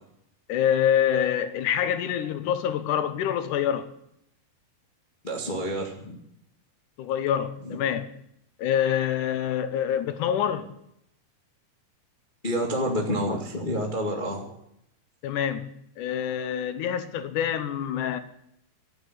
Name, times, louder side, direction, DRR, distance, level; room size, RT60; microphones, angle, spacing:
voice 1, 0.5-4.0 7.0-8.1 8.6-10.7 15.2-18.2, left 9 dB, 75° left, 2.1 m, -26 dB
voice 2, 5.2-6.2 7.6-7.8 12.4-14.5, equal, 25° left, 1.1 m, -28 dB
13.5 x 8.8 x 9.7 m
omnidirectional pair, 4.4 m